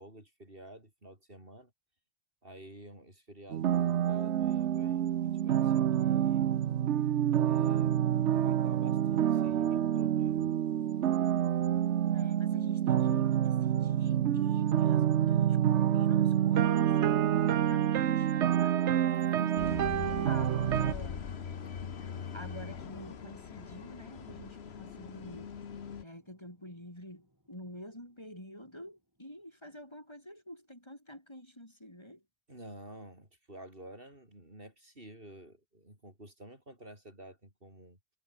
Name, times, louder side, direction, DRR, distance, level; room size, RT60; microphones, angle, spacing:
voice 1, 0.0-1.7 2.4-6.5 7.4-10.5 21.6-21.7 22.1-22.3 32.5-38.0, right 1 dB, 55° right, 7.1 m, -51 dB
sound 1, 3.5-20.9, right 10 dB, 85° right, 1.1 m, -27 dB
voice 2, 12.0-17.0 17.4-18.9 19.4-21.3 21.9-25.5 26.0-32.2, equal, 25° left, 5.6 m, -48 dB
sound 2, 19.1-28.4 28.7-28.8, right 1 dB, 15° right, 5.6 m, -57 dB
sound 3, 19.6-26.0, left 7 dB, 65° left, 1.4 m, -41 dB
omnidirectional pair, 1.1 m